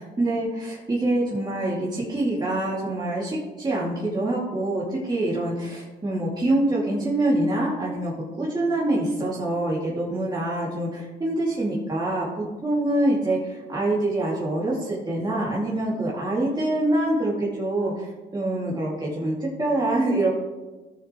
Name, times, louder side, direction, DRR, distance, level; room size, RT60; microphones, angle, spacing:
voice 1, 0.0-20.3, right 1 dB, 20° right, -6 dB, 2.4 m, -25 dB
15.5 x 6.8 x 3.1 m, 1.2 s
cardioid pair, 90°, 20 cm